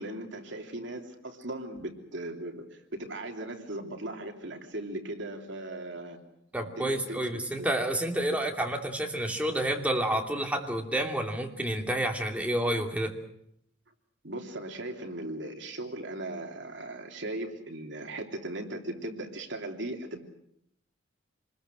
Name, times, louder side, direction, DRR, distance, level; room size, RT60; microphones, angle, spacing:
voice 1, 0.0-6.2 6.6-7.7 14.2-20.2, right 1 dB, 60° right, 3 dB, 3.2 m, -38 dB
voice 2, 6.5-13.1, right 1 dB, 5° right, 2 dB, 2.8 m, -29 dB
27.5 x 21.0 x 6.4 m, 0.74 s
head